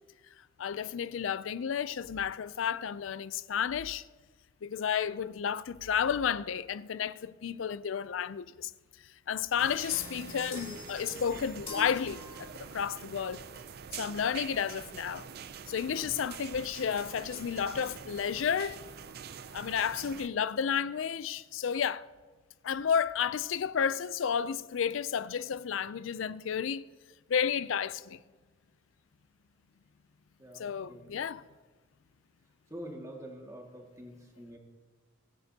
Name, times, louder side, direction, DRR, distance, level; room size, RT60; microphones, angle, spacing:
voice 1, 0.6-4.1 4.6-8.7 9.3-13.4 13.9-15.3 15.7-18.8 19.5-22.0 22.6-26.8 27.3-28.2 30.5-31.4, left 7 dB, 75° left, 0.4 m, -32 dB
sound 1, 9.6-20.3, right 7 dB, 50° right, 0.5 m, -46 dB
sound 2, 9.9-12.9, left 1 dB, 25° left, 2.3 m, -45 dB
voice 2, 30.4-31.2 32.7-34.6, equal, 15° right, 2.0 m, -46 dB
21.5 x 10.5 x 2.8 m
head